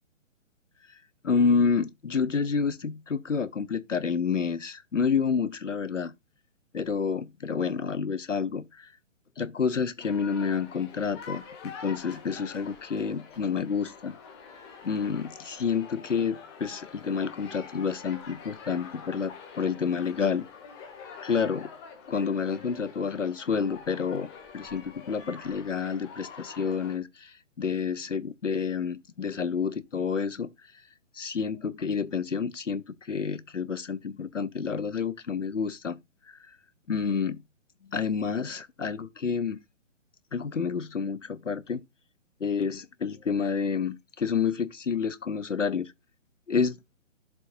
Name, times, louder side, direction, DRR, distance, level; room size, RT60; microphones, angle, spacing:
voice 1, 1.2-6.1 6.7-8.9 9.4-14.2 14.8-20.5 21.2-21.7 22.1-30.5 31.1-36.0 36.9-37.4 37.9-39.6 40.3-41.8 42.4-45.9 46.5-46.8, left 6 dB, 75° left, 1.0 m, -29 dB
sound 1, 10.0-27.0, left 6 dB, 20° left, 2.0 m, -46 dB
11.0 x 7.3 x 2.5 m
figure-of-eight pair, 135°, 37 cm